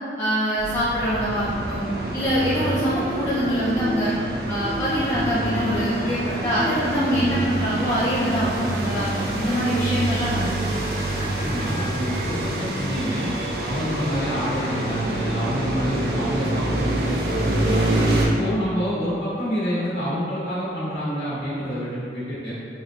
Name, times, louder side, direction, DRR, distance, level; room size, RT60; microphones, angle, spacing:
voice 1, 0.2-1.9 2.1-4.1 4.5-10.5, equal, 15° left, -12 dB, 0.5 m, -24 dB
sound 1, 0.6-18.3, right 1 dB, 60° right, 0.5 m, -27 dB
Guitar, 2.5-10.2, equal, 80° right, 1.0 m, -36 dB
voice 2, 11.4-13.3 13.6-17.8 18.2-22.5, equal, 75° left, -9 dB, 1.2 m, -27 dB
4.6 x 3.1 x 2.4 m, 2.4 s
head